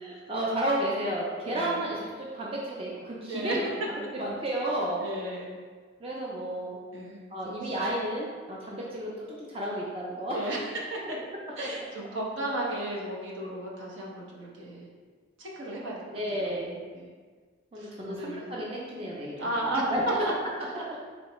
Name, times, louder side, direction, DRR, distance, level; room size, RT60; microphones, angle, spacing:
voice 1, 0.0-3.6 4.1-5.0 6.0-6.8 7.3-10.5 16.1-16.8 17.7-20.0 20.9-21.0, right 1 dB, 30° right, -4 dB, 0.5 m, -32 dB
voice 2, 1.4-1.8 3.3-3.6 5.0-5.5 6.9-7.7 10.3-10.6 10.9-11.2 11.6-14.9 15.4-16.0 16.3-16.6 16.9-17.1 17.8-18.5 19.4-19.8 20.2-20.3, right 1 dB, 70° right, -3 dB, 0.8 m, -34 dB
4.4 x 3.1 x 3.0 m, 1.5 s
head